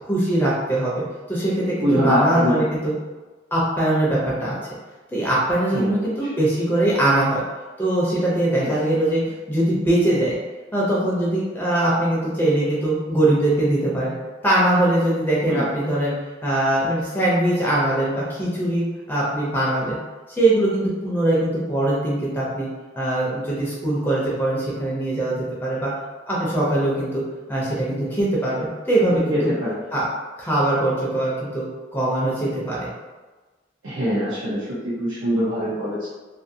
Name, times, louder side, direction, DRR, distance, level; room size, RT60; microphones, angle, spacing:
voice 1, 0.0-1.0 1.3-2.9 3.5-4.6 5.1-7.4 7.8-10.4 10.7-14.1 14.4-16.1 16.4-20.0 20.3-22.7 23.0-25.9 26.3-27.2 27.5-29.3 29.9-30.0 30.4-31.6 31.9-32.9, right 1 dB, 10° left, -6 dB, 0.5 m, -21 dB
voice 2, 1.8-2.5 5.7-6.3 8.6-8.7 15.5-15.6 29.3-29.8 33.8-36.1, equal, 85° right, -10 dB, 0.7 m, -23 dB
2.6 x 2.5 x 2.6 m, 1.3 s
head